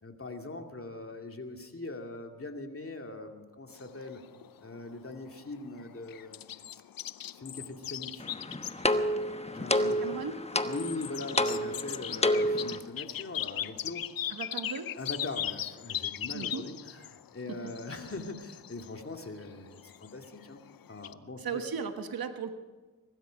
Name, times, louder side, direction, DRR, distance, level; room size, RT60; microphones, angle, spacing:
voice 1, 0.0-4.3 4.6-6.8 7.3-8.3 9.5-10.1 10.6-14.1 14.9-20.6 20.9-21.6, left 2 dB, 40° left, 4 dB, 2.3 m, -41 dB
sound 1, 3.7-21.1, left 11 dB, 75° left, 0.6 m, -40 dB
sound 2, 8.2-12.8, left 1 dB, 20° left, 1.1 m, -29 dB
voice 2, 9.7-10.3 14.3-14.9 16.3-16.6 21.4-22.5, right 6 dB, 80° right, 7 dB, 1.4 m, -36 dB
22.5 x 12.5 x 5.2 m, 1.3 s
cardioid pair, 40°, 35 cm